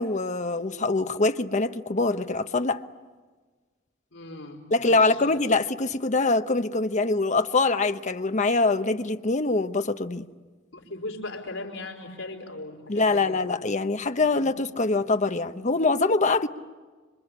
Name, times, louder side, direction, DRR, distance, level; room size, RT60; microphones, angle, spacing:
voice 1, 0.0-2.8 4.7-10.3 12.9-16.5, left 3 dB, 40° left, 0.9 m, -24 dB
voice 2, 4.1-4.6 4.9-5.6 10.7-13.5 14.3-14.4, left 2 dB, 80° left, 4.5 m, -38 dB
26.5 x 24.5 x 8.7 m
head